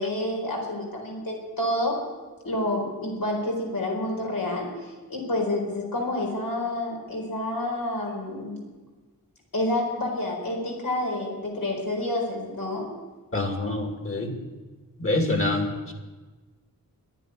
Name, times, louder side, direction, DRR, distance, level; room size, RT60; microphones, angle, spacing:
voice 1, 0.0-2.0 2.4-8.6 9.5-12.9, left 1 dB, 70° left, 0 dB, 4.4 m, -29 dB
voice 2, 13.3-14.4 15.0-15.9, left 2 dB, 35° left, 2 dB, 2.9 m, -26 dB
11.5 x 10.5 x 9.8 m, 1.3 s
wide cardioid pair, 75°, 35 cm